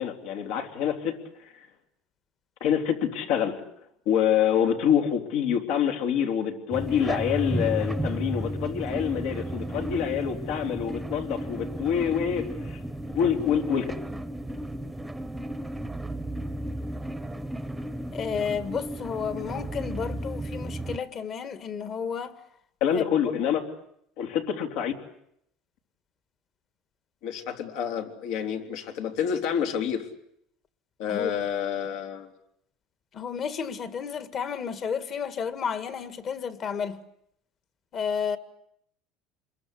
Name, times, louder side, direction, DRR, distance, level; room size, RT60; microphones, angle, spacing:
voice 1, 0.0-1.7 2.6-3.6 4.1-12.8 13.1-13.9 22.8-23.6 24.2-24.9 27.2-30.1 31.0-32.3, left 8 dB, 75° left, 3.7 m, -27 dB
sound 1, 6.7-21.0, right 1 dB, 5° right, 1.1 m, -33 dB
voice 2, 18.1-22.4 22.9-23.1 31.1-31.3 33.1-37.0 37.9-38.4, left 6 dB, 35° left, 1.9 m, -32 dB
28.0 x 22.0 x 8.5 m
cardioid pair, 145°, 0 cm